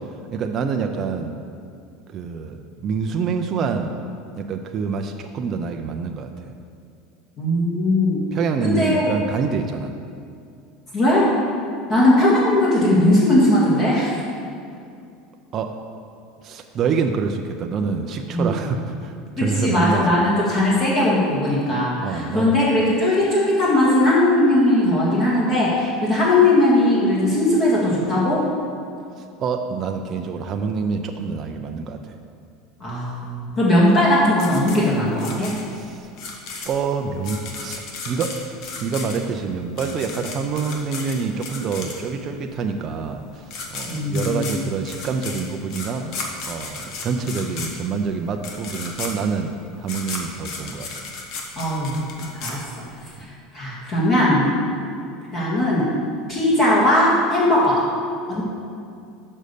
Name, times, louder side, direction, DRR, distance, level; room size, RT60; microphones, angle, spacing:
voice 1, 0.3-1.4 2.1-4.0 4.4-6.3 8.3-9.9 15.5-15.8 16.4-20.2 22.0-22.6 29.2-32.2 35.7-36.1 36.6-38.4 38.8-50.9, right 5 dB, 35° right, 4 dB, 0.5 m, -26 dB
voice 2, 7.4-8.2 8.6-9.1 10.9-11.3 11.9-14.2 18.3-18.5 19.4-28.4 32.8-35.5 43.9-44.5 51.6-52.6 53.5-54.5 55.3-55.9 56.3-57.8 58.3-58.4, left 1 dB, 35° left, -6 dB, 1.8 m, -19 dB
sound 1, 34.4-42.3 43.2-43.3 43.5-53.1, left 4 dB, 55° left, 1.2 m, -34 dB
6.3 x 5.4 x 6.8 m, 2.4 s
supercardioid pair, 135°, 0 cm